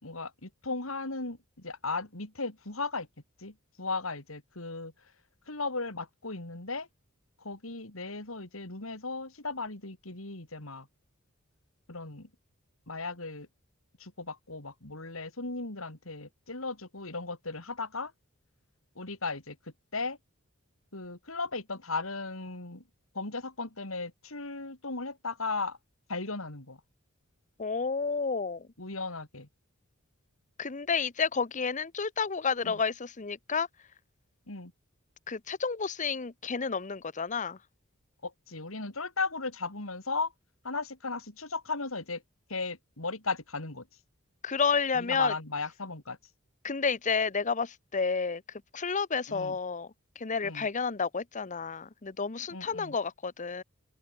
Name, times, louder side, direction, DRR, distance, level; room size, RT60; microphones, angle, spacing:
voice 1, 0.0-3.1 3.4-4.9 5.5-6.9 7.4-10.9 11.9-12.3 12.9-13.5 14.0-18.1 19.0-20.2 20.9-22.8 23.1-25.8 26.1-26.8 28.8-29.5 32.6-32.8 34.5-34.7 38.2-40.3 40.6-42.2 42.5-43.9 44.9-46.2 49.3-49.6 50.4-50.7 52.5-53.0, left 3 dB, 85° left, 4.0 m, -36 dB
voice 2, 27.6-28.7 30.6-33.7 35.3-37.6 44.4-45.3 46.6-48.4 48.7-49.9 50.2-53.6, left 5 dB, 35° left, 0.9 m, -30 dB
open air
head